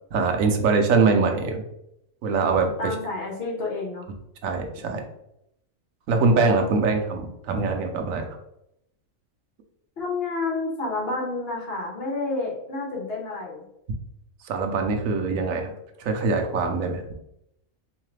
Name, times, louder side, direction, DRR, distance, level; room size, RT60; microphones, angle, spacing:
voice 1, 0.1-1.6 2.2-2.9 4.4-5.0 6.1-8.4 14.4-15.7 16.0-17.0, right 4 dB, 90° right, 4 dB, 1.1 m, -23 dB
voice 2, 2.8-4.1 10.0-13.6, left 3 dB, 50° left, -3 dB, 1.2 m, -29 dB
3.7 x 3.2 x 3.2 m, 0.80 s
omnidirectional pair, 1.4 m